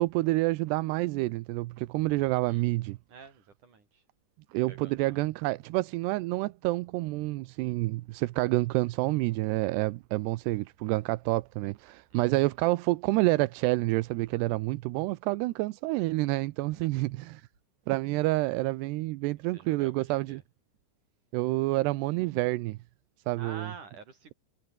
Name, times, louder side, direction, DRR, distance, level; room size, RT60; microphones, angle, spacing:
voice 1, 0.0-3.0 4.5-17.4 17.9-20.4 21.3-22.8 23.3-23.7, right 20 dB, 85° right, 2.7 m, -28 dB
voice 2, 2.3-2.7 3.1-4.0 4.7-5.2 12.1-12.4 16.7-17.3 19.5-20.4 23.4-24.3, right 5 dB, 45° right, 6.6 m, -49 dB
omnidirectional pair, 5.0 m